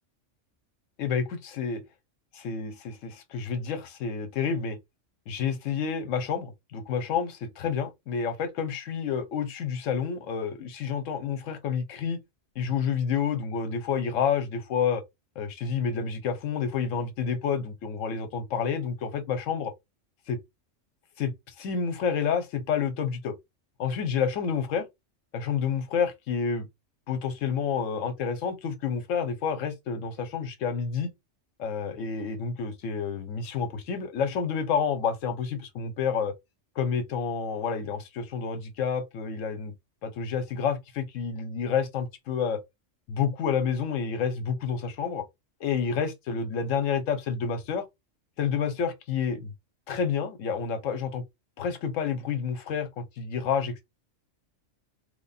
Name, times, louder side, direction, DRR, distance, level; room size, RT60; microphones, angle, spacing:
voice 1, 1.0-1.8 2.3-4.8 5.3-12.2 12.6-15.0 15.4-19.7 20.3-20.4 21.2-21.3 21.6-23.3 23.8-24.8 25.3-26.7 27.1-31.1 31.6-36.3 36.8-39.7 40.0-42.6 43.1-45.2 45.6-47.8 48.4-49.5 49.9-51.2 51.6-53.8, left 6 dB, 80° left, 1.1 m, -29 dB
3.2 x 2.1 x 4.0 m
omnidirectional pair, 1.3 m